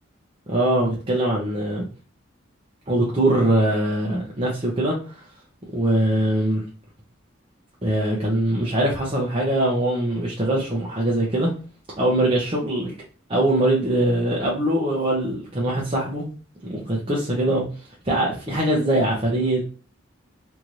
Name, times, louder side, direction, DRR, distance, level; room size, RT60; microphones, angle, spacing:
voice 1, 0.5-1.8 2.9-5.1 5.7-6.6 7.8-11.5 12.0-12.9 13.3-16.3 16.6-17.6 18.1-19.6, right 1 dB, 30° right, 0.7 m, -22 dB
2.8 x 2.5 x 3.0 m
head